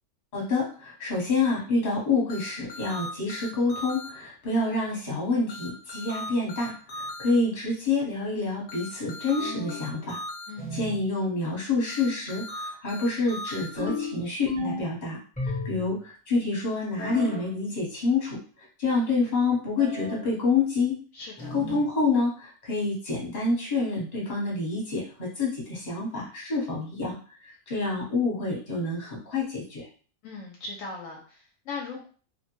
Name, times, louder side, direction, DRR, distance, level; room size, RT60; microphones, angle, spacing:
voice 1, 0.3-10.2 10.7-15.2 15.6-18.4 18.8-21.0 21.5-27.2 27.4-29.9, left 3 dB, 30° left, -3 dB, 1.0 m, -27 dB
sound 1, 2.3-4.1 5.5-7.3 8.7-10.5 11.9-13.7, left 1 dB, 50° left, 0.7 m, -38 dB
sound 2, 9.4-9.9 10.6-11.1 13.8-15.0 15.4-16.0 17.0-17.5 19.8-20.3 21.4-21.9, left 2 dB, 10° left, 0.6 m, -34 dB
voice 2, 21.1-21.6 30.2-32.1, left 3 dB, 75° left, -1 dB, 1.0 m, -39 dB
2.5 x 2.1 x 2.9 m, 0.39 s
omnidirectional pair, 1.5 m